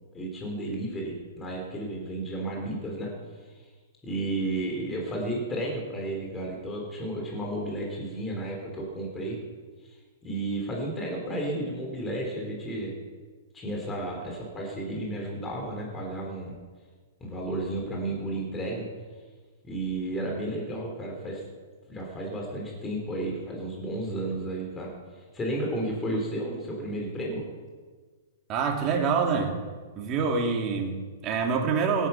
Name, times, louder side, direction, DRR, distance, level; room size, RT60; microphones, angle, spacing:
voice 1, 0.1-3.1 4.0-9.4 10.2-12.9 13.5-16.5 17.2-18.9 19.6-21.4 21.9-24.9 25.3-27.5, right 1 dB, 15° left, -1 dB, 4.2 m, -32 dB
voice 2, 28.5-29.5 30.0-32.1, right 5 dB, 30° right, 1 dB, 2.9 m, -26 dB
17.5 x 11.0 x 6.1 m, 1.5 s
hypercardioid pair, 145°, 0 cm